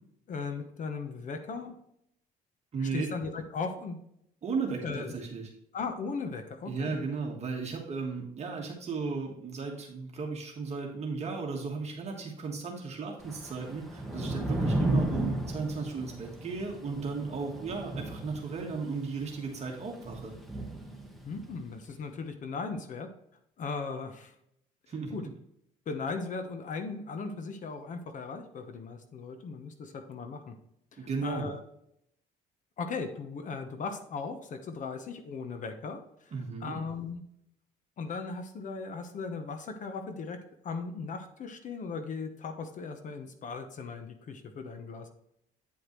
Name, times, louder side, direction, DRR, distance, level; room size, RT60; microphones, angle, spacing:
voice 1, 0.3-1.8 2.8-4.0 4.8-5.1 5.7-7.0 21.2-23.1 23.6-24.3 25.1-25.3 25.9-30.5 30.9-31.6 32.8-36.3 36.6-37.2 38.0-40.4 40.6-45.1, left 4 dB, 50° left, 7 dB, 1.0 m, -37 dB
voice 2, 2.7-3.1 4.4-5.5 6.6-20.3 24.9-25.2 31.0-31.5 36.3-36.8, right 4 dB, 40° right, 0 dB, 1.4 m, -35 dB
Thunder / Rain, 13.2-21.6, right 1 dB, ahead, 1.3 m, -34 dB
9.2 x 5.0 x 3.1 m, 0.75 s
cardioid pair, 110°, 17 cm